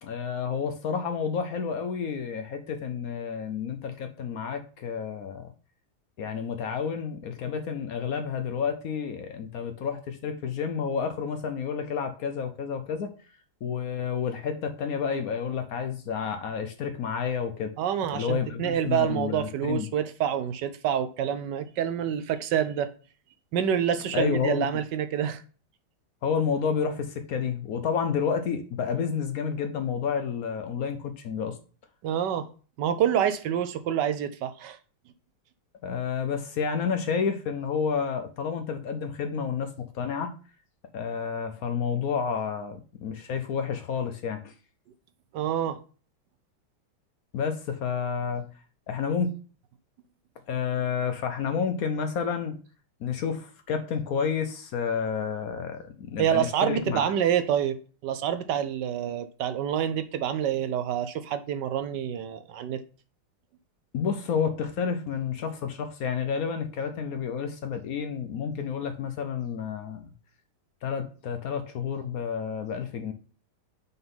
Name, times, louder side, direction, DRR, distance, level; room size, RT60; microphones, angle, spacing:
voice 1, 0.0-5.5 6.2-13.1 13.6-17.7 18.1-19.9 24.1-24.7 26.2-31.6 35.8-40.3 40.9-44.5 47.3-48.4 48.9-49.3 50.5-52.6 53.0-57.1 63.9-70.1 70.8-73.1, left 6 dB, 70° left, 0.8 m, -30 dB
voice 2, 17.8-22.9 23.5-25.4 32.0-32.5 32.8-34.8 45.3-45.8 56.2-57.8 58.0-62.8, right 9 dB, 70° right, 1.1 m, -27 dB
5.9 x 3.8 x 5.4 m
omnidirectional pair, 2.3 m